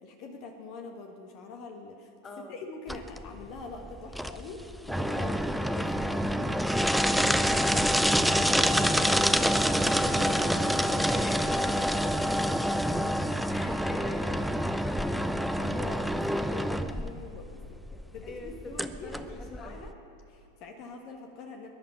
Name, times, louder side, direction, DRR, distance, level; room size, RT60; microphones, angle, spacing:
voice 1, 0.0-2.1 2.5-6.6 6.9-11.2 11.7-12.2 13.9-14.0 15.6-17.6 18.1-19.9 20.3-21.7, left 3 dB, 40° left, 4 dB, 1.4 m, -44 dB
voice 2, 2.2-2.6 5.7-5.8 11.0-12.1 13.5-15.5 16.3-16.6 17.9-19.8, left 2 dB, 15° left, 4 dB, 1.6 m, -45 dB
sound 1, 2.9-19.9, equal, ahead, 0.5 m, -27 dB
21.5 x 11.0 x 5.6 m, 2.8 s
figure-of-eight pair, 90°, 0 cm